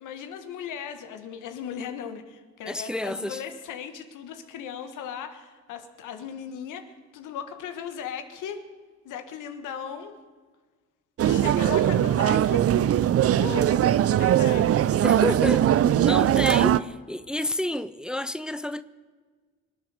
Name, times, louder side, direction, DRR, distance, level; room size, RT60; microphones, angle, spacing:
voice 1, 0.0-8.6 9.0-10.1 11.2-12.7 13.3-14.9, left 8 dB, 85° left, 1.6 m, -37 dB
voice 2, 2.7-3.4 15.0-18.8, left 1 dB, 5° right, 0.5 m, -30 dB
sound 1, 11.2-16.8, right 11 dB, 50° right, 0.5 m, -20 dB
24.0 x 9.1 x 6.6 m
cardioid pair, 90°, 30 cm